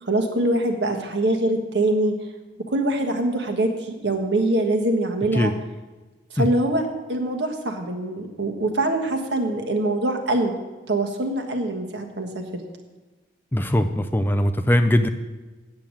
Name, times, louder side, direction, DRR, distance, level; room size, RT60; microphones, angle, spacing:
voice 1, 0.0-2.2 2.7-5.5 6.3-10.6 10.9-12.6, right 1 dB, 85° right, 3 dB, 1.4 m, -24 dB
voice 2, 13.5-15.1, left 1 dB, 10° left, 9 dB, 0.4 m, -20 dB
8.6 x 7.0 x 7.5 m, 1.2 s
head